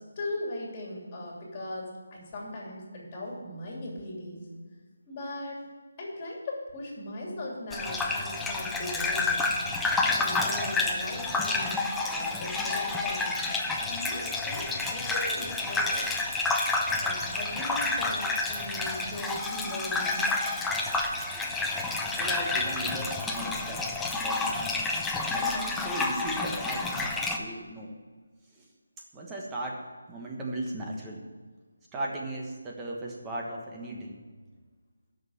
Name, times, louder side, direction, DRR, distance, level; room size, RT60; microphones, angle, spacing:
voice 1, 0.0-4.5 5.1-5.6 6.0-9.5 10.2-13.3 13.8-16.1 17.0-20.2, left 1 dB, 25° left, -2 dB, 2.9 m, -38 dB
Gurgling / Bathtub (filling or washing), 7.7-27.4, left 3 dB, 5° left, 0.5 m, -29 dB
voice 2, 22.1-23.8 24.2-24.6 25.3-27.9 28.5-28.6 29.1-31.2 31.9-34.2, right 1 dB, 10° right, -2 dB, 1.3 m, -37 dB
8.6 x 6.4 x 7.9 m, 1.4 s
figure-of-eight pair, 165°, 0 cm